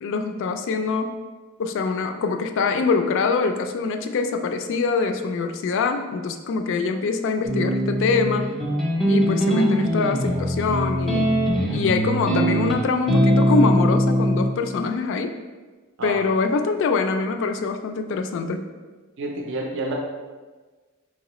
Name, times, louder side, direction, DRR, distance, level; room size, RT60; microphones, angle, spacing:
voice 1, 0.0-1.2 1.6-8.5 9.1-11.3 11.7-15.4 16.0-18.7, left 4 dB, 60° left, 6 dB, 0.3 m, -24 dB
sound 1, 7.4-14.5, equal, ahead, 0.5 m, -21 dB
voice 2, 19.2-19.9, right 2 dB, 60° right, 0 dB, 0.5 m, -29 dB
3.9 x 2.9 x 3.0 m, 1.3 s
head